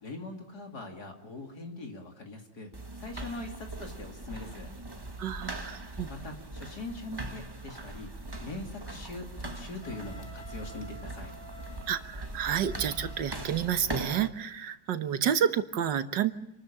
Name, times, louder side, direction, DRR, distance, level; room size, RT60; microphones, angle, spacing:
voice 1, 0.0-2.7 3.0-4.7 6.1-8.1 8.4-11.4, left 2 dB, 55° left, 2 dB, 3.1 m, -42 dB
sound 1, 2.7-14.3, right 1 dB, 15° right, 1.2 m, -41 dB
voice 2, 5.2-6.1 11.9-16.4, right 9 dB, 70° right, 11 dB, 1.7 m, -30 dB
Wind instrument woodwind instrument, 9.8-13.7, right 3 dB, 35° left, 2.5 m, -50 dB
27.5 x 13.5 x 8.7 m, 0.88 s
omnidirectional pair, 2.0 m